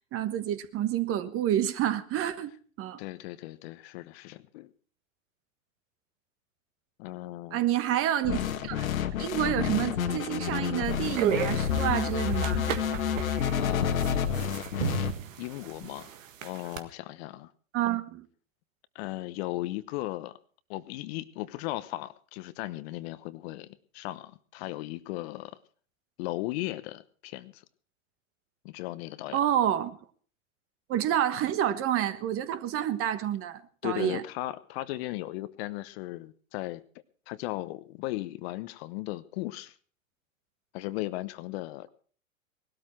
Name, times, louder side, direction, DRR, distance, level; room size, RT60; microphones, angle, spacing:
voice 1, 0.1-2.5 2.8-3.0 7.5-8.9 9.2-12.6 17.7-18.3 29.3-30.0 30.9-34.2, right 11 dB, 35° right, 1.3 m, -28 dB
voice 2, 3.0-4.7 7.0-7.6 13.5-14.5 15.4-16.1 16.4-17.5 18.9-20.4 20.7-25.6 26.2-27.6 28.6-29.4 33.8-36.8 37.3-39.7 40.7-41.9, left 17 dB, 50° left, 1.0 m, -36 dB
sound 1, 8.2-15.1, left 8 dB, 80° left, 1.7 m, -29 dB
sound 2, 10.9-16.8, right 8 dB, 70° right, 1.8 m, -34 dB
19.0 x 13.0 x 4.4 m
hypercardioid pair, 110°, 41 cm